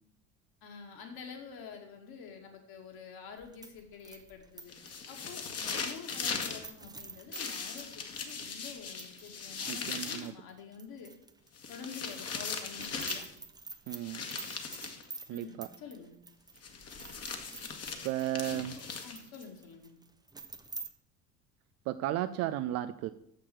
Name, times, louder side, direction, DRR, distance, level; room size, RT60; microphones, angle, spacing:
voice 1, 0.6-4.7 5.1-11.1 11.7-13.2 15.3-16.1 18.5-18.6 19.0-19.9, left 6 dB, 50° left, 3 dB, 2.3 m, -48 dB
sound 1, 3.4-9.3 9.6-9.7 10.2-11.5 11.8-20.9, right 4 dB, 10° right, 0.7 m, -49 dB
sound 2, 4.7-6.6 7.3-10.3 11.6-13.3 14.0-15.0 16.6-19.4, left 5 dB, 30° left, 1.5 m, -39 dB
voice 2, 9.7-10.3 13.9-14.2 15.3-15.7 18.0-18.7 21.9-23.1, right 13 dB, 35° right, 12 dB, 0.4 m, -34 dB
7.2 x 6.7 x 7.7 m, 0.74 s
figure-of-eight pair, 65°, 47 cm